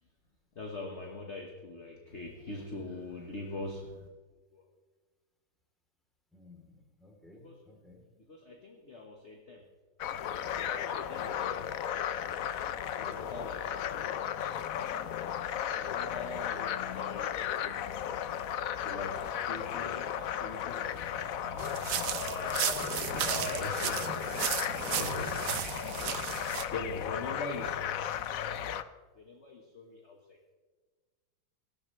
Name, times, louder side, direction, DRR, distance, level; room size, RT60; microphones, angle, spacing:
voice 1, 0.5-4.1 4.5-4.6 7.3-7.6 8.3-9.6 10.3-11.7 13.0-13.7 15.8-18.0 18.8-21.7 22.0-25.4 26.7-28.1 29.1-30.4, left 2 dB, 40° left, 1 dB, 1.6 m, -43 dB
voice 2, 6.3-8.0 24.7-24.9, left 2 dB, ahead, -1 dB, 3.3 m, -56 dB
sound 1, 10.0-28.8, left 9 dB, 65° left, 0.8 m, -35 dB
sound 2, 21.6-26.6, right 10 dB, 65° right, 1.3 m, -34 dB
18.5 x 13.5 x 3.3 m, 1.4 s
omnidirectional pair, 2.1 m